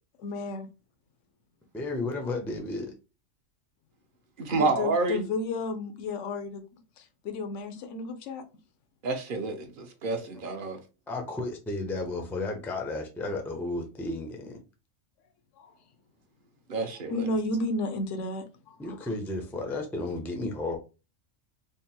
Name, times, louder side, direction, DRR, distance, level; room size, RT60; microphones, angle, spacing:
voice 1, 0.2-0.7 4.5-6.6 7.0-8.4 15.6-15.7 16.8-19.1, left 2 dB, 70° left, 1.0 m, -33 dB
voice 2, 1.7-2.9 11.1-14.6 18.8-20.8, left 2 dB, 5° left, 0.4 m, -33 dB
voice 3, 4.4-5.2 9.0-10.8 16.7-17.3, right 3 dB, 50° right, 0.7 m, -29 dB
3.6 x 2.1 x 4.2 m
omnidirectional pair, 1.3 m